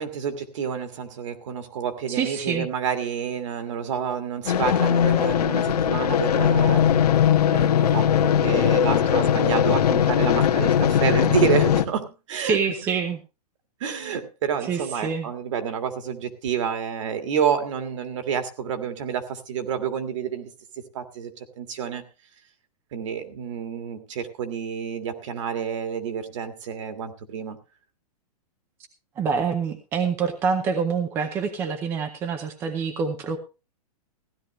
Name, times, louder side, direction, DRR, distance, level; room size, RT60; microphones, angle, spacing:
voice 1, 0.0-6.8 7.4-8.1 8.4-12.6 13.8-20.5 20.9-22.0 22.9-27.6, right 7 dB, 50° right, 1.9 m, -29 dB
voice 2, 2.1-2.7 12.4-13.2 14.6-15.3 29.2-33.4, right 5 dB, 10° right, 0.6 m, -26 dB
sound 1, 4.5-11.8, left 9 dB, 80° left, 1.4 m, -20 dB
16.0 x 12.0 x 3.2 m
hypercardioid pair, 175°, 20 cm